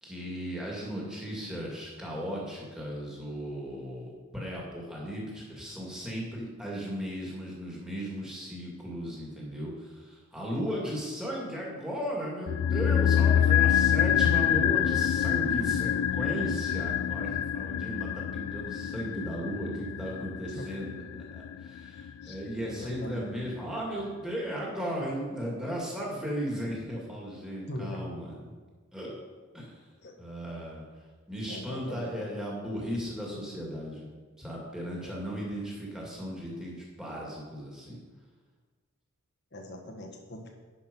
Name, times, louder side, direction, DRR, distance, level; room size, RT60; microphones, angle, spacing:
voice 1, 0.0-21.0 21.3-28.5 28.9-29.2 29.5-29.7 30.2-30.8 31.3-34.1 34.4-38.0, equal, 5° right, -4 dB, 2.4 m, -36 dB
sound 1, 12.5-22.7 23.0-23.1, left 9 dB, 75° left, 0.3 m, -26 dB
voice 2, 20.5-20.8 22.2-22.4 22.6-23.3 27.7-28.0 30.0-30.2 31.5-32.2 35.0-35.3 39.5-40.5, left 1 dB, 50° left, 2 dB, 1.4 m, -41 dB
10.5 x 6.3 x 5.5 m, 1.4 s
head